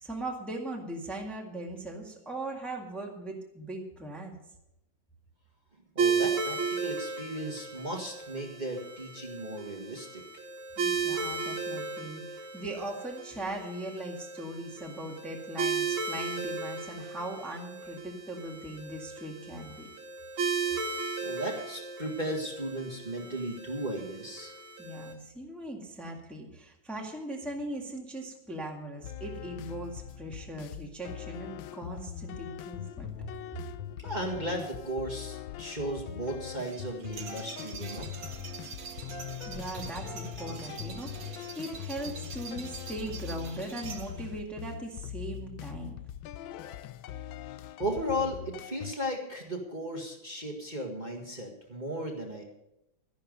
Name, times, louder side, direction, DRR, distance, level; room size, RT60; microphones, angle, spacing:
voice 1, 0.0-4.4 10.8-19.9 24.8-33.1 39.5-45.9, right 1 dB, ahead, -1 dB, 1.8 m, -39 dB
voice 2, 6.0-10.2 21.2-24.6 33.9-38.1 47.8-52.4, equal, 25° right, 0 dB, 2.0 m, -35 dB
sound 1, 6.0-25.1, right 5 dB, 85° right, 2.5 m, -35 dB
sound 2, 29.0-48.9, left 11 dB, 85° left, 1.4 m, -42 dB
sound 3, 36.6-44.4, right 5 dB, 55° right, 1.5 m, -44 dB
12.5 x 11.5 x 5.4 m, 0.84 s
omnidirectional pair, 2.1 m